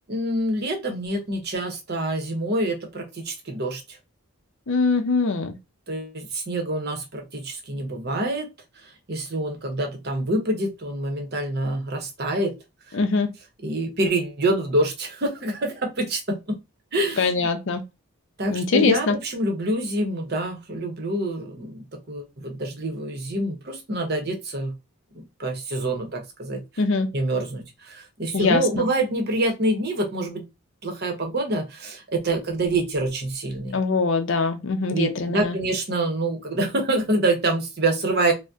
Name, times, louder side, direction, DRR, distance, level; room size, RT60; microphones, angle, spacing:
voice 1, 0.1-4.0 5.9-8.5 8.8-12.5 12.9-13.0 13.6-16.5 16.9-17.5 18.4-24.7 25.1-26.6 27.1-30.4 30.8-33.8 34.9-38.3, right 1 dB, 45° right, 0.8 m, -26 dB
voice 2, 4.7-5.6 12.9-13.3 17.2-17.8 18.5-19.2 26.8-27.1 28.3-28.8 33.7-35.6, left 4 dB, 60° left, 0.5 m, -22 dB
2.6 x 2.1 x 3.4 m
head